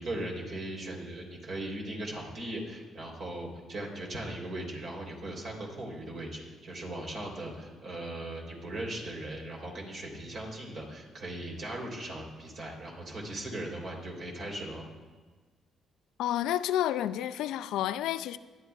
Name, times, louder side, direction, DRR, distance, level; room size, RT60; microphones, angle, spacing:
voice 1, 0.0-14.8, right 1 dB, 55° right, 3.5 m, -38 dB
voice 2, 16.2-18.4, left 12 dB, 90° left, 0.3 m, -30 dB
20.5 x 11.5 x 2.4 m
cardioid pair, 90°, 0 cm